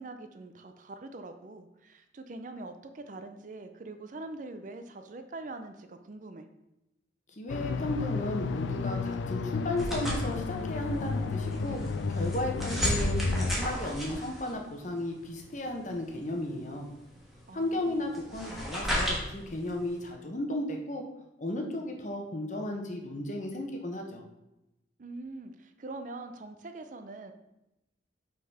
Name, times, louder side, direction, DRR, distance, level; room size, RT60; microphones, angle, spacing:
voice 1, 0.0-6.5 17.5-18.0 25.0-27.3, right 2 dB, 45° right, 8 dB, 0.4 m, -43 dB
voice 2, 7.4-11.8 12.1-16.9 17.5-21.0 21.4-24.2, left 1 dB, 40° left, 2 dB, 1.0 m, -34 dB
sound 1, 7.5-13.6, left 4 dB, 80° left, 0.3 m, -32 dB
sound 2, 9.8-20.1, equal, ahead, 1.4 m, -35 dB
5.6 x 4.0 x 5.4 m, 0.92 s
head